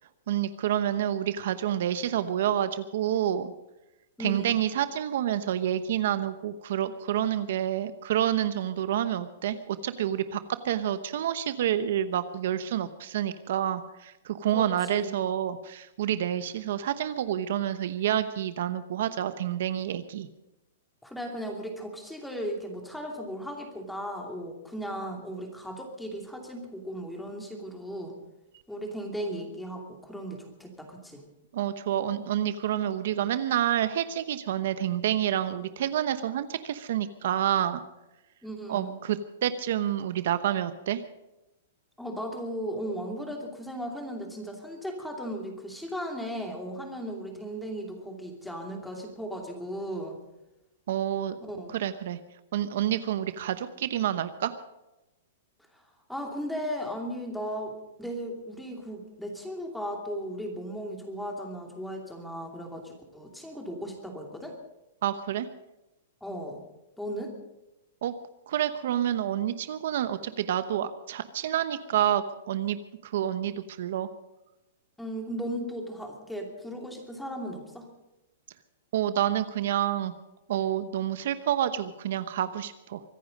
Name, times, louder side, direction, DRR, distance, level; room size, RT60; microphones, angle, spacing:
voice 1, 0.3-3.5 4.2-20.3 31.5-37.8 38.7-41.0 50.9-51.4 51.7-52.2 52.5-54.5 65.0-65.5 68.0-68.1 68.5-72.8 73.0-74.1 78.9-80.1 80.5-83.0, right 11 dB, 65° right, 12 dB, 0.9 m, -28 dB
voice 2, 4.2-4.6 14.5-15.1 21.0-28.2 28.7-31.2 38.4-39.0 42.0-50.2 51.4-51.7 55.7-64.6 66.2-66.6 67.0-67.4 75.0-77.9, equal, 5° left, 2 dB, 2.8 m, -36 dB
24.0 x 10.5 x 5.3 m, 0.97 s
hypercardioid pair, 150°, 0 cm